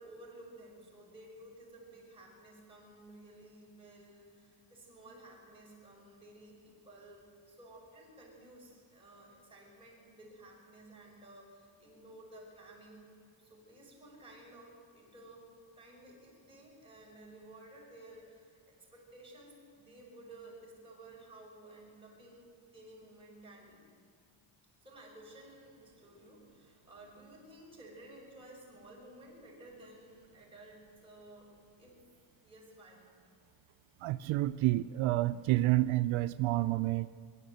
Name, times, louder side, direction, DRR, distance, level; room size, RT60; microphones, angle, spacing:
voice 1, 0.0-13.1 13.4-15.4 15.7-23.8 24.8-31.5 31.8-32.0 32.4-33.0, right 1 dB, 10° right, -5 dB, 6.0 m, -54 dB
voice 2, 34.0-37.1, right 16 dB, 75° right, 12 dB, 0.6 m, -29 dB
24.0 x 14.0 x 8.1 m, 2.2 s
cardioid pair, 160°, 49 cm